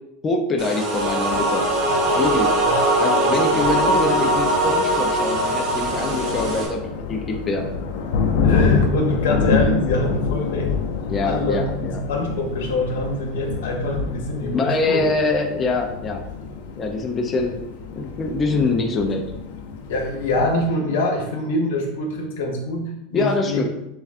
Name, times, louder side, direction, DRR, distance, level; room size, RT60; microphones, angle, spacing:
voice 1, 0.2-1.7 2.2-2.5 3.0-6.8 7.1-7.6 11.1-12.0 14.5-16.2 16.8-17.6 18.0-19.2 23.1-23.7, left 3 dB, 20° left, 2 dB, 0.4 m, -24 dB
sound 1, 0.6-6.7, right 1 dB, 35° right, 0.9 m, -21 dB
Thunder, 0.9-20.7, left 5 dB, 65° left, 0.6 m, -27 dB
voice 2, 8.3-10.7 11.2-15.0 19.9-23.7, left 1 dB, 85° left, 2 dB, 0.9 m, -25 dB
6.8 x 2.3 x 2.4 m, 0.86 s
supercardioid pair, 170°, 0 cm